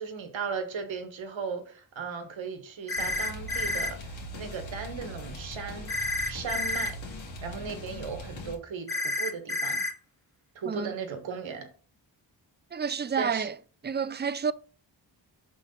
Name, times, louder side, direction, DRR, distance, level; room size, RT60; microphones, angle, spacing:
voice 1, 0.0-6.0 6.3-7.0 7.4-9.8 10.5-11.7 13.2-13.5, right 5 dB, 85° right, 1.2 m, -37 dB
sound 1, 2.9-3.9 5.9-6.9 8.9-9.9, left 2 dB, 5° left, 1.6 m, -30 dB
sound 2, 3.0-8.6, left 1 dB, 80° left, 1.7 m, -41 dB
voice 2, 12.7-13.5 13.8-14.5, right 6 dB, 25° right, 0.4 m, -29 dB
5.9 x 4.0 x 5.4 m
cardioid pair, 50°, 45 cm